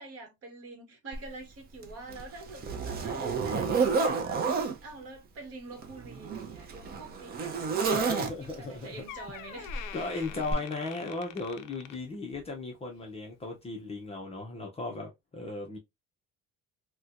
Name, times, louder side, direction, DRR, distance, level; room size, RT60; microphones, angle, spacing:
voice 1, 0.0-10.4, right 3 dB, 45° right, 1.3 m, -46 dB
Zipper (clothing), 1.1-1.2 1.8-4.8 5.7-8.7 9.7-9.9 10.5-10.6, right 5 dB, 30° right, 0.5 m, -30 dB
voice 2, 7.9-9.0 9.9-15.8, left 3 dB, 20° left, 0.5 m, -36 dB
Door, 8.6-8.7 9.1-12.6 12.9-13.2 13.9-14.0, left 10 dB, 70° left, 0.5 m, -46 dB
4.2 x 2.2 x 2.4 m
cardioid pair, 160°, 33 cm